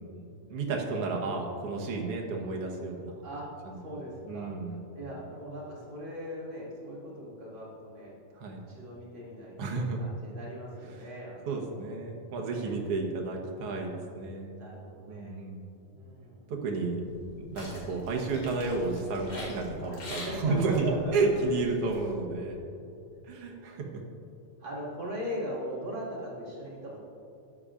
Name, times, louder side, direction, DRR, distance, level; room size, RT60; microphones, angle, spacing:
voice 1, 0.5-3.2 3.7-4.8 8.3-8.6 9.6-10.0 10.9-11.0 11.5-14.7 15.1-15.7 16.5-22.6 23.2-24.0, right 3 dB, 60° right, 0 dB, 1.7 m, -32 dB
voice 2, 3.7-8.1 8.7-11.6 12.3-12.8 14.6-15.4 15.9-16.6 19.3-19.5 20.3-21.2 24.6-27.0, equal, 45° right, -6 dB, 2.6 m, -39 dB
sound 1, 17.1-22.1, left 1 dB, 60° left, 3.1 m, -44 dB
13.5 x 9.9 x 2.5 m, 2.7 s
omnidirectional pair, 3.5 m